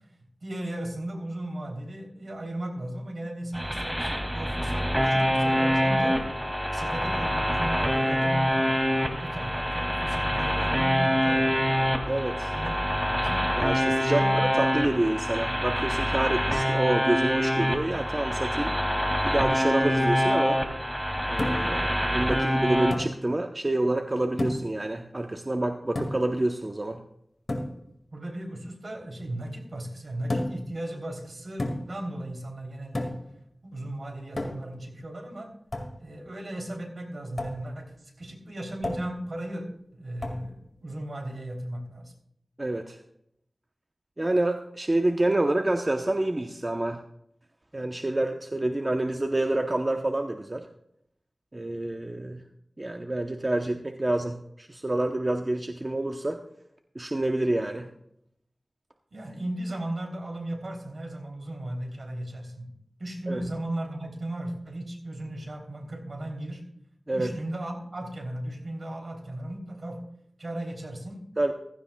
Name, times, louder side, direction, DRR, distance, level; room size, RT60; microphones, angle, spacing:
voice 1, 0.4-6.2 6.7-11.7 12.5-13.4 14.1-14.4 28.1-33.1 33.6-35.5 36.0-42.1 59.1-62.7 63.0-66.6 67.1-70.0 70.4-71.2, right 1 dB, 65° right, 1 dB, 3.1 m, -36 dB
sound 1, 3.5-22.9, equal, 5° right, 2.2 m, -25 dB
voice 2, 12.1-12.5 13.6-18.7 19.2-20.6 21.3-27.0 42.6-43.0 44.2-47.0 47.7-50.7 51.5-52.4 52.8-56.4 56.9-57.9 63.3-63.4 67.1-67.3 71.4-71.5, right 1 dB, 35° right, 4 dB, 0.8 m, -28 dB
sound 2, 21.4-21.8 22.9-23.2 24.4-24.8 26.0-26.3 27.5-27.8 30.3-30.7 31.6-32.0 32.9-33.3 34.4-34.8 35.7-36.0 37.4-37.6 38.8-39.2 40.2-40.5, left 1 dB, 55° left, 2.0 m, -31 dB
15.5 x 14.5 x 2.3 m, 0.73 s
wide cardioid pair, 55°, 0 cm